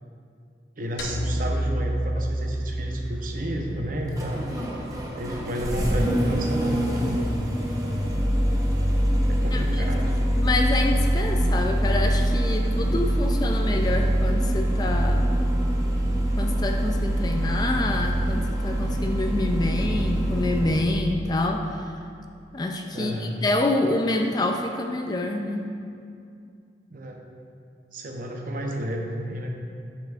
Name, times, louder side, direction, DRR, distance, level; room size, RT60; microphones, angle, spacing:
voice 1, 0.8-4.5 5.2-7.2 9.3-10.2 22.9-23.4 26.9-27.2 27.9-29.6, equal, 50° right, 1 dB, 0.7 m, -31 dB
sound 1, 1.0-5.4, right 1 dB, 70° left, 0.7 m, -30 dB
Engine starting, 2.5-20.9, equal, 20° right, 0.8 m, -24 dB
voice 2, 9.5-9.9 10.4-15.4 16.4-21.8 22.5-25.8, left 2 dB, 25° left, 3 dB, 0.3 m, -27 dB
8.6 x 7.3 x 2.4 m, 2.4 s
head